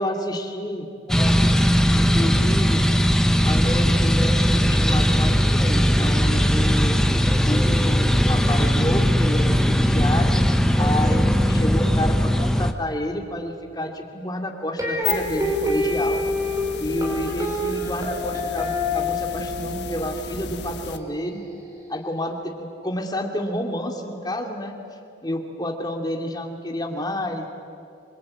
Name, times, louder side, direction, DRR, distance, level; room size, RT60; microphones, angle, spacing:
voice 1, 0.0-1.6 2.0-2.8 3.4-7.0 7.4-10.4 10.8-16.2 16.8-21.4 21.9-24.8 25.2-27.5, left 1 dB, 20° left, 2 dB, 2.6 m, -29 dB
sound 1, 1.1-12.7, equal, 5° left, 0.9 m, -19 dB
sound 2, 14.8-21.0, left 5 dB, 70° left, 1.4 m, -34 dB
sound 3, 14.8-21.9, left 1 dB, 20° right, 4.8 m, -27 dB
26.5 x 22.0 x 8.9 m, 2.5 s
head